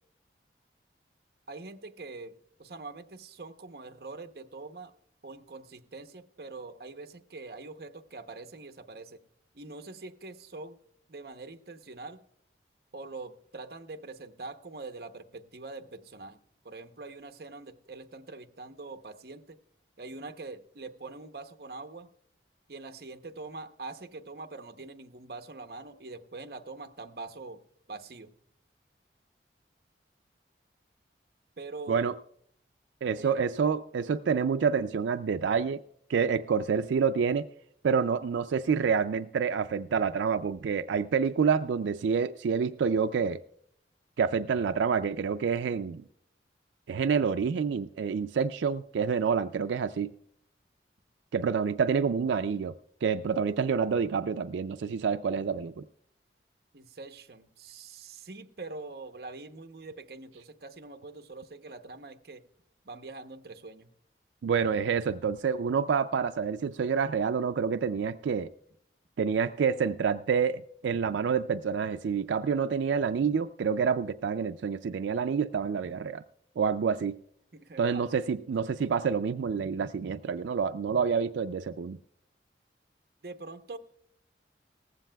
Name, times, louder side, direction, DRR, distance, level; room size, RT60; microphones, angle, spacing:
voice 1, 1.5-4.9 5.2-9.2 9.5-10.8 11.1-12.2 12.9-16.4 16.6-19.6 20.0-22.1 22.7-28.3 31.6-32.0 33.2-33.4 56.7-62.4 62.8-63.9 77.5-78.0 83.2-83.8, right 3 dB, 55° right, 0.8 m, -44 dB
voice 2, 33.0-35.8 36.1-37.5 37.8-43.4 44.2-46.0 46.9-50.1 51.3-52.7 53.0-55.8 64.4-68.5 69.2-76.2 76.6-77.2 77.8-82.0, right 6 dB, 90° right, 0.4 m, -28 dB
18.0 x 15.0 x 2.2 m
head